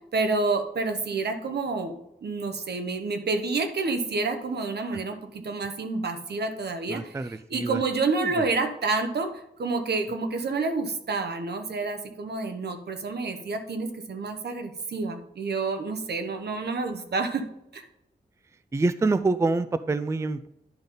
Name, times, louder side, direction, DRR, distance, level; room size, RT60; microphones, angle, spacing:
voice 1, 0.1-7.2 7.5-9.3 9.6-17.4 17.7-17.8, right 3 dB, 80° right, 6 dB, 1.0 m, -29 dB
voice 2, 6.9-8.4 18.7-20.5, right 3 dB, 15° right, 13 dB, 0.3 m, -27 dB
10.5 x 5.4 x 3.8 m, 0.86 s
wide cardioid pair, 120°, 17 cm